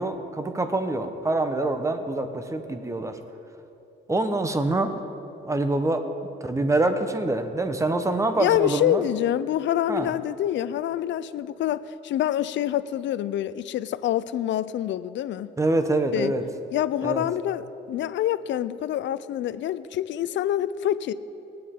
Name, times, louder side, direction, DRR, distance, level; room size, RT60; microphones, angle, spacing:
voice 1, 0.0-3.2 4.1-4.9 5.4-6.1 6.4-9.0 9.9-10.1 15.6-16.4 17.0-17.2, right 2 dB, 15° right, 8 dB, 0.9 m, -25 dB
voice 2, 8.4-15.5 16.1-16.3 16.7-21.1, left 12 dB, 70° left, 16 dB, 0.4 m, -26 dB
18.5 x 10.0 x 3.7 m, 2.9 s
cardioid pair, 90°, 20 cm